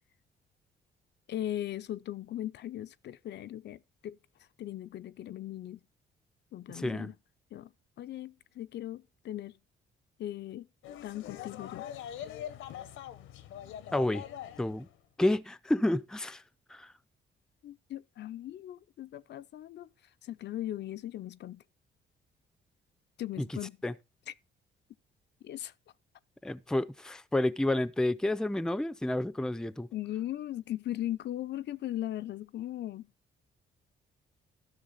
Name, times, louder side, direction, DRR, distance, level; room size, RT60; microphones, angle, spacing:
voice 1, 1.3-5.8 6.5-7.2 7.5-7.7 8.0-9.6 10.2-10.7 11.0-12.4 17.6-19.9 20.2-21.6 23.2-23.8 24.3-24.4 25.4-25.7 29.9-33.1, left 13 dB, 60° left, 0.5 m, -38 dB
voice 2, 6.7-7.1 13.9-14.2 14.6-14.9 15.2-16.4 16.7-16.9 23.4-23.5 23.8-23.9 26.4-29.9, left 1 dB, 5° left, 0.5 m, -30 dB
sound 1, 10.8-15.0, left 10 dB, 85° left, 0.9 m, -43 dB
13.0 x 6.3 x 3.9 m
cardioid pair, 90°, 20 cm